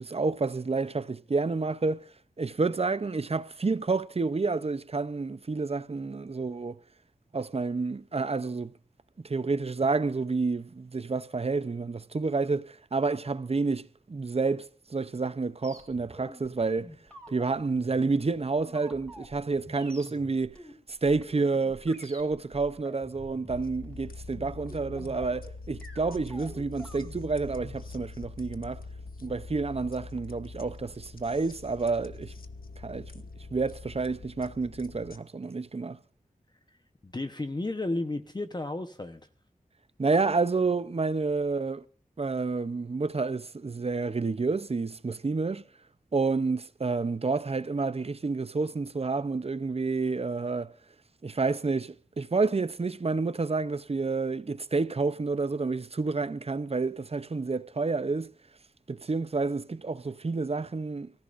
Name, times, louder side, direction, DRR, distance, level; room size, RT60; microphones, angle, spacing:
voice 1, 0.0-2.0 2.4-6.8 7.3-8.7 9.2-16.9 17.3-20.6 21.0-28.8 29.2-32.3 32.8-33.1 33.5-36.0 40.0-41.8 42.2-45.6 46.1-50.7 51.2-58.3 58.9-61.1, right 4 dB, 45° right, 0.7 m, -29 dB
sound 1, 15.6-27.8, equal, 10° left, 4.4 m, -48 dB
sound 2, 23.5-35.2, left 3 dB, 80° left, 1.0 m, -44 dB
voice 2, 37.0-39.2, left 2 dB, 30° left, 1.0 m, -33 dB
29.0 x 14.5 x 2.6 m
wide cardioid pair, 70°, 15 cm